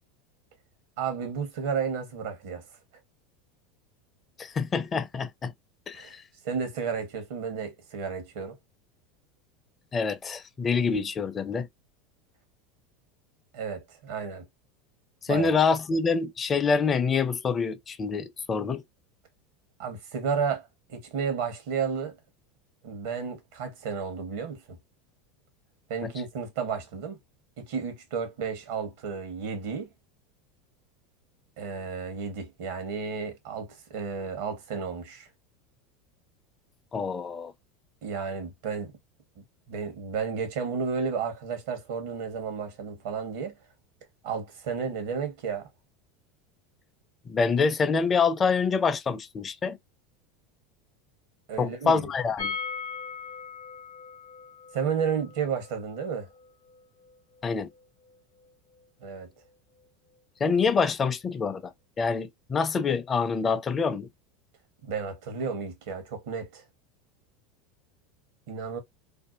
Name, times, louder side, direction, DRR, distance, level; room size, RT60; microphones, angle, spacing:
voice 1, 1.0-2.7 5.9-6.1 6.4-8.6 13.5-14.5 15.3-15.6 19.8-22.2 22.8-24.8 25.9-27.2 27.6-29.9 31.6-35.3 38.0-38.9 39.4-43.6 44.2-45.7 51.5-52.1 54.7-56.3 59.0-59.3 64.8-66.6 68.5-68.8, right 6 dB, 70° right, 0.9 m, -32 dB
voice 2, 4.4-5.5 5.9-6.2 9.9-11.7 15.2-18.8 26.0-26.1 36.9-37.5 47.3-49.8 51.6-52.5 57.4-57.7 60.4-64.1, left 5 dB, 30° left, 0.4 m, -26 dB
sound 1, 52.4-58.2 58.4-58.5 58.8-58.9, left 5 dB, 80° left, 0.5 m, -40 dB
2.6 x 2.1 x 2.4 m
hypercardioid pair, 105°, 0 cm